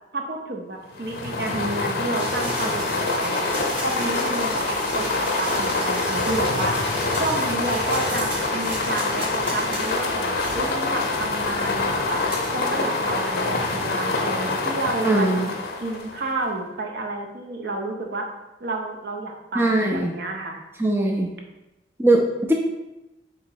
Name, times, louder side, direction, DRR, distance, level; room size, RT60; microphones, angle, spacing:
voice 1, 0.1-3.4 3.8-6.8 7.2-12.2 12.5-15.5 15.8-18.3 18.6-20.6, right 2 dB, 65° right, 2 dB, 0.7 m, -30 dB
sound 1, 0.9-16.4, left 3 dB, 60° left, 0.6 m, -26 dB
sound 2, 2.1-13.9, equal, 30° right, 1.5 m, -35 dB
voice 2, 15.0-15.5 19.6-20.1 20.8-21.3 22.0-22.5, right 1 dB, 15° right, 1 dB, 0.3 m, -20 dB
3.7 x 2.9 x 4.5 m, 0.99 s
head